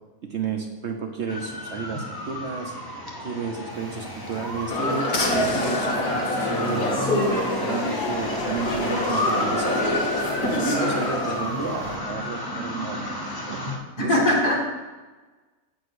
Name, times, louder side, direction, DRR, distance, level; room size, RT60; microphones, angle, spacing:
voice 1, 0.3-2.7 3.2-5.9 6.4-7.1 7.6-9.8 10.5-13.7 14.0-14.3, right 5 dB, 55° right, 3 dB, 0.9 m, -32 dB
sound 1, 1.3-13.8, left 1 dB, 15° left, 1.0 m, -31 dB
sound 2, 3.7-12.0, left 3 dB, 65° left, 1.6 m, -38 dB
sound 3, 4.7-11.4, left 1 dB, 45° left, 1.9 m, -26 dB
voice 2, 6.9-7.6 14.0-14.6, left 1 dB, 85° left, -7 dB, 2.2 m, -22 dB
7.9 x 5.0 x 6.2 m, 1.3 s
omnidirectional pair, 1.6 m